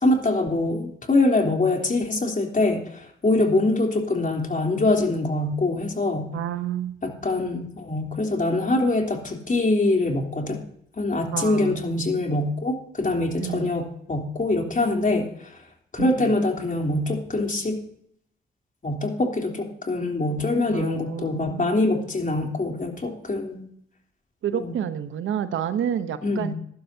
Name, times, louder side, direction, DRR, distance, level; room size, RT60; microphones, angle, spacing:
voice 1, 0.0-6.3 7.0-10.6 11.0-15.3 15.9-17.8 18.8-23.7 24.5-24.8 26.2-26.5, left 2 dB, 40° left, 2 dB, 3.3 m, -24 dB
voice 2, 6.3-7.0 11.3-11.8 13.4-13.7 16.0-16.4 20.7-21.9 24.4-26.5, right 9 dB, 85° right, 11 dB, 0.9 m, -29 dB
15.5 x 12.0 x 2.8 m, 0.69 s
cardioid pair, 50°, 20 cm